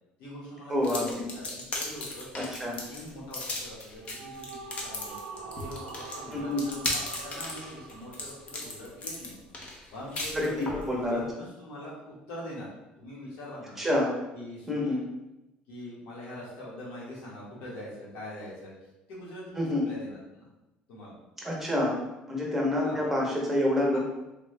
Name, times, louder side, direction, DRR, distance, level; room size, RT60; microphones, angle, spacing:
voice 1, 0.2-2.3 2.9-9.4 9.9-12.7 13.0-13.8 14.3-15.0 15.7-18.7 19.1-20.5 20.9-21.1 22.8-23.0 23.9-24.0, left 1 dB, 90° left, -6 dB, 1.4 m, -43 dB
voice 2, 0.7-1.2 2.5-2.7 6.3-6.6 10.3-10.5 10.9-11.2 13.8-14.1 14.7-15.0 19.6-19.8 21.4-22.0 22.3-24.0, left 1 dB, 10° right, -3 dB, 0.8 m, -27 dB
sound 1, 0.8-10.9, left 2 dB, 40° left, 0.7 m, -36 dB
sound 2, 3.8-9.3, right 5 dB, 90° right, 0.4 m, -45 dB
3.5 x 2.3 x 3.2 m, 0.97 s
cardioid pair, 145°, 3 cm